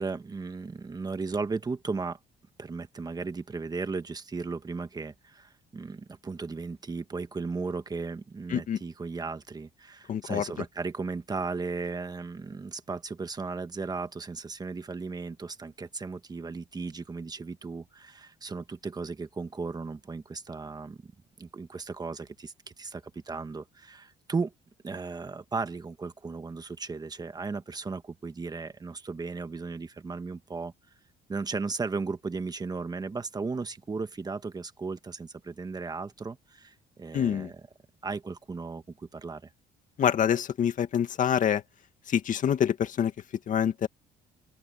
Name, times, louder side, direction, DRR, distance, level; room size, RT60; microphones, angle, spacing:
voice 1, 0.0-2.2 2.6-21.1 21.4-24.5 24.8-30.7 31.3-37.6 38.0-39.5, right 4 dB, 25° right, 1.5 m, -36 dB
voice 2, 10.1-10.4 37.1-37.5 40.0-41.6 42.1-43.1 43.5-43.9, left 9 dB, 50° left, 2.1 m, -26 dB
open air
cardioid pair, 110°, 17 cm